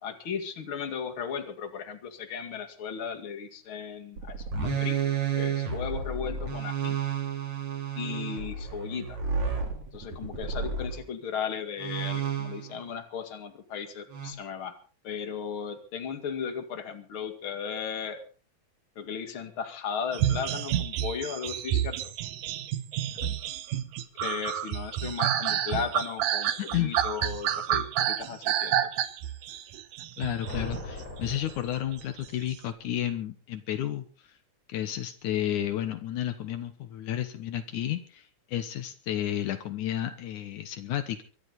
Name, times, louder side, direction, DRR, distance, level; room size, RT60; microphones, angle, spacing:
voice 1, 0.0-7.0 8.0-9.2 9.9-14.8 15.0-18.2 19.0-22.1 24.2-28.8, left 7 dB, 45° left, 7 dB, 2.8 m, -36 dB
sound 1, 4.2-11.0 11.8-12.8 14.1-14.3, right 6 dB, 65° right, 5.2 m, -31 dB
sound 2, 20.1-31.4 32.2-32.6, right 11 dB, 85° right, 2.6 m, -29 dB
voice 2, 26.6-26.9 30.2-34.1 34.7-41.2, left 11 dB, 75° left, 9 dB, 2.6 m, -32 dB
sound 3, 30.4-32.4, left 2 dB, 25° left, 6.1 m, -40 dB
23.5 x 13.0 x 4.1 m, 0.37 s
omnidirectional pair, 3.5 m